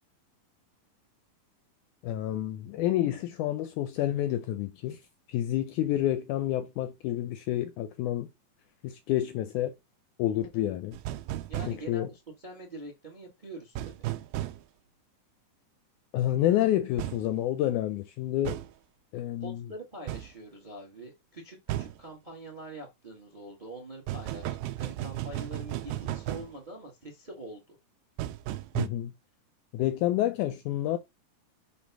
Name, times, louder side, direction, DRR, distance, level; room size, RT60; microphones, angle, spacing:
voice 1, 2.0-5.0 5.3-8.3 8.8-9.7 10.2-11.0 11.7-12.1 16.1-18.6 19.1-19.6 28.8-29.1 29.7-31.0, left 13 dB, 80° left, 1.8 m, -29 dB
sound 1, 10.9-11.8 13.8-14.6 17.0-17.2 18.5-18.7 20.1-20.3 21.7-22.0 24.1-26.5 28.2-28.9, right 14 dB, 85° right, 2.3 m, -34 dB
voice 2, 11.5-13.9 19.4-27.7, right 1 dB, 45° right, 0.5 m, -44 dB
6.4 x 3.1 x 5.9 m
omnidirectional pair, 3.9 m